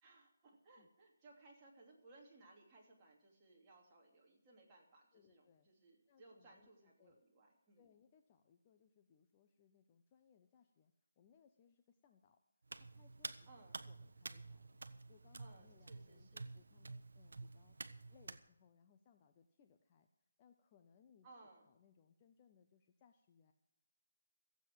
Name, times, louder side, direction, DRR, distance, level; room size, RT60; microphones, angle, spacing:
voice 1, 0.0-7.9 13.5-13.8 15.4-16.5 21.2-21.7, right 2 dB, 15° right, -4 dB, 2.9 m, -63 dB
voice 2, 5.1-5.7 6.1-7.2 7.8-12.4 12.8-13.5 13.8-14.8 15.1-17.8 18.1-20.1 20.4-23.5, left 7 dB, 20° left, 6 dB, 0.7 m, -70 dB
Hands, 12.7-18.4, right 3 dB, 70° right, 0.9 m, -51 dB
15.0 x 8.3 x 7.7 m, 0.80 s
hypercardioid pair, 170°, 0 cm